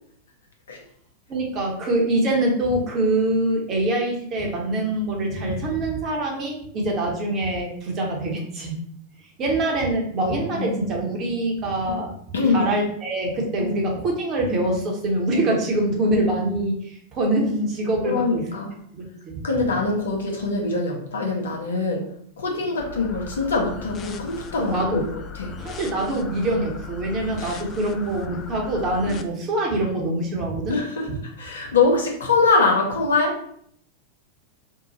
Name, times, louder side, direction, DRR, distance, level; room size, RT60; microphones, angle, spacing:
voice 1, 1.3-8.8 9.4-12.1 12.5-18.4 18.9-19.4 24.6-25.0 25.6-30.8, right 1 dB, 30° right, 0 dB, 1.0 m, -24 dB
voice 2, 12.3-12.7 13.6-13.7 18.0-18.7 19.4-22.1 22.4-25.1 25.3-25.5 27.4-27.6 29.1-29.2 30.7-33.4, left 3 dB, 65° left, 0 dB, 0.8 m, -23 dB
sound 1, 22.8-29.2, left 7 dB, 30° left, 0.3 m, -38 dB
2.8 x 2.3 x 4.0 m, 0.65 s
figure-of-eight pair, 90°, 0 cm